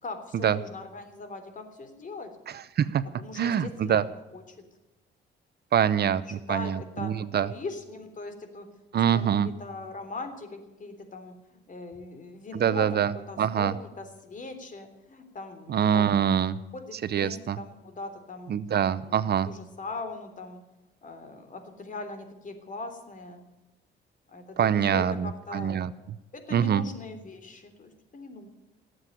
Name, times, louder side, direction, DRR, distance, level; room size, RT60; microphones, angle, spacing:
voice 1, 0.0-2.3 3.2-4.7 6.1-7.1 7.4-8.7 9.1-13.0 13.3-16.1 16.7-18.6 19.1-20.6 21.0-23.4 24.3-25.8 26.3-28.5, left 3 dB, 40° left, 7 dB, 3.4 m, -40 dB
voice 2, 3.4-4.0 5.7-7.5 8.9-9.5 12.5-13.1 13.4-13.7 15.7-16.6 17.1-17.6 18.5-19.5 24.6-25.9 26.5-26.8, right 8 dB, 55° right, 15 dB, 0.8 m, -24 dB
18.0 x 7.8 x 10.0 m, 1.0 s
cardioid pair, 90°, 20 cm